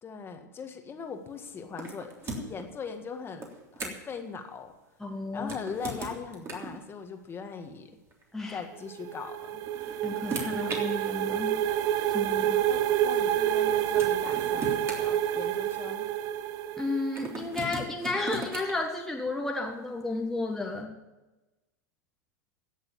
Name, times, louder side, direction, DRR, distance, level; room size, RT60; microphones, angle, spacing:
voice 1, 0.0-3.5 3.7-4.7 5.3-7.9 8.5-9.6 12.7-16.1, left 5 dB, 25° left, 5 dB, 1.8 m, -40 dB
sound 1, 1.8-2.7 3.4-4.2 5.4-6.8 8.1-8.2 9.4-10.8 11.8-11.9 13.5-13.6 14.0-15.8 17.1-18.7, right 2 dB, 25° right, 3.4 m, -38 dB
voice 2, 5.0-5.5 8.3-8.6 10.0-11.6 12.1-12.6 16.8-21.0, left 2 dB, 5° left, 0 dB, 1.6 m, -32 dB
sound 2, 8.7-17.4, right 11 dB, 40° right, 0.7 m, -28 dB
16.5 x 6.8 x 8.7 m, 1.1 s
hypercardioid pair, 105°, 10 cm